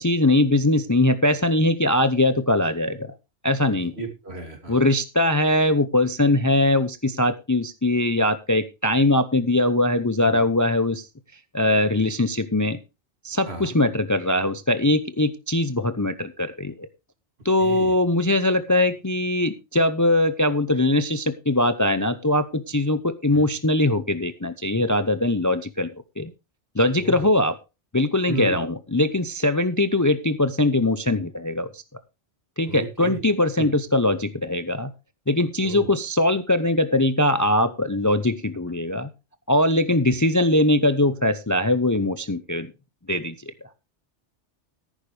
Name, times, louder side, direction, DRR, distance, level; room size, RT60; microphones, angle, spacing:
voice 1, 0.0-3.1 3.4-3.9 4.7-11.0 11.5-12.8 13.2-16.9 17.4-26.3 26.7-27.6 27.9-31.8 32.6-34.9 35.3-39.1 39.5-42.7 43.1-43.3, left 1 dB, 20° left, 12 dB, 0.6 m, -21 dB
voice 2, 4.0-4.8 10.2-10.4 13.5-13.8 17.6-17.9 23.3-23.5 27.0-27.3 28.3-28.6 32.7-33.2 33.6-33.7 35.6-35.9, right 2 dB, 60° right, 5 dB, 3.0 m, -33 dB
14.0 x 11.5 x 3.3 m, 0.28 s
omnidirectional pair, 1.2 m